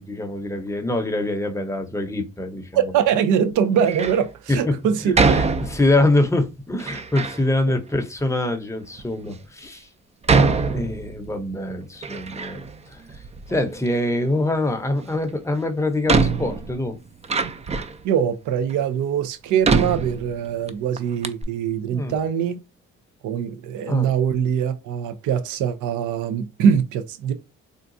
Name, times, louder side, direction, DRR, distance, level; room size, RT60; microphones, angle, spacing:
voice 1, 0.0-2.7 4.5-4.8 5.0-9.9 10.7-12.6 12.9-13.0 13.5-17.0 21.9-22.2 23.9-24.1, left 1 dB, 10° left, 0.7 m, -24 dB
voice 2, 2.7-5.1 18.0-22.6 23.2-27.3, right 8 dB, 80° right, 0.6 m, -22 dB
Door, 3.8-4.3 5.1-6.1 6.8-7.4 8.2-8.3 9.0-9.1 10.2-11.4 11.7-12.8 13.1-13.9 15.3-15.4 16.1-18.0 18.7-18.8 19.6-20.7 21.0-21.1 21.2-21.4, right 4 dB, 20° right, 0.4 m, -23 dB
3.8 x 2.3 x 2.6 m
cardioid pair, 90°, 30 cm